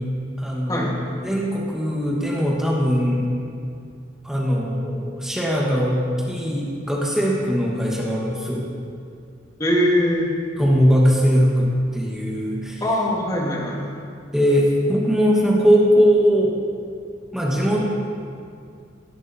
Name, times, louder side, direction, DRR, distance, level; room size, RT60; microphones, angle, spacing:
voice 1, 0.4-3.3 4.2-6.0 6.3-8.6 10.6-12.8 14.3-16.5 17.3-17.8, equal, 5° right, -4 dB, 2.2 m, -20 dB
voice 2, 9.6-10.3 12.8-14.0, equal, 20° left, -2 dB, 2.7 m, -21 dB
17.5 x 17.5 x 4.6 m, 2.3 s
head